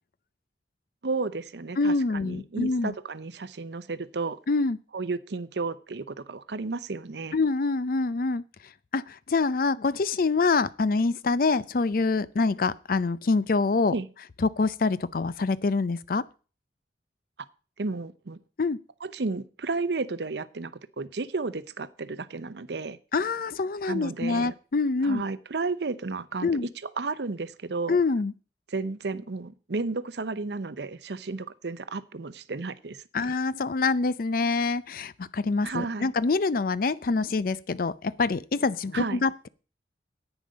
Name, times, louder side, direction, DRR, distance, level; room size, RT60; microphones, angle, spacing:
voice 1, 1.0-4.4 4.9-7.4 13.9-14.1 17.8-18.4 19.0-23.0 23.9-24.5 25.0-28.0 28.7-33.3 35.6-36.1 38.9-39.2, right 3 dB, 70° right, 0.7 m, -33 dB
voice 2, 1.8-2.9 4.5-4.8 7.3-8.4 8.9-13.9 14.4-16.2 18.6-18.8 23.1-25.2 26.4-26.7 27.9-28.3 33.1-39.5, left 3 dB, 50° left, 0.5 m, -25 dB
10.5 x 9.0 x 5.1 m
head